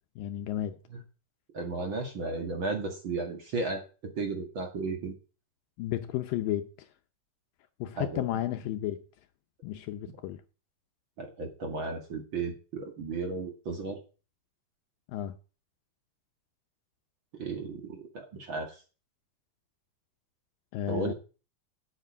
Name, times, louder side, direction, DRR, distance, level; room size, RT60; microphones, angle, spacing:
voice 1, 0.2-0.8 5.8-6.9 7.8-9.0 9.6-10.4 15.1-15.4 20.7-21.1, left 12 dB, 75° left, 2.3 m, -33 dB
voice 2, 1.5-5.1 8.0-8.2 11.2-14.0 17.4-18.8 20.9-21.1, right 3 dB, 40° right, 2.0 m, -34 dB
8.2 x 8.0 x 8.4 m
omnidirectional pair, 4.2 m